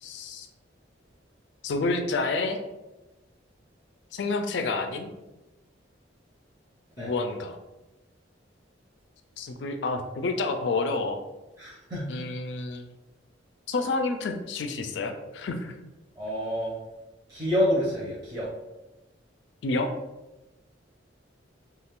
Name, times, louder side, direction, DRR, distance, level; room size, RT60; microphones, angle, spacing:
voice 1, 0.0-0.5 1.6-2.6 4.1-5.1 7.0-7.6 9.4-11.2 12.1-12.9 13.7-15.7 19.6-19.9, left 3 dB, 65° left, 6 dB, 0.4 m, -29 dB
voice 2, 11.6-12.1 16.2-16.8 17.3-18.5, equal, 20° right, -8 dB, 0.6 m, -28 dB
2.4 x 2.3 x 3.5 m, 1.0 s
head